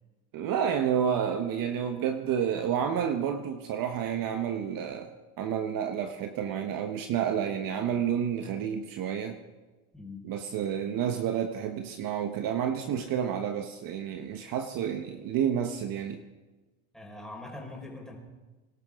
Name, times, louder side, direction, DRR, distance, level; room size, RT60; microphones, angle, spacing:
voice 1, 0.3-5.1 5.4-9.4 10.2-16.2, right 8 dB, 50° right, 6 dB, 1.3 m, -30 dB
voice 2, 9.9-10.3 16.9-18.2, left 2 dB, ahead, -2 dB, 4.8 m, -42 dB
25.5 x 12.5 x 3.7 m, 1.2 s
supercardioid pair, 105°, 43 cm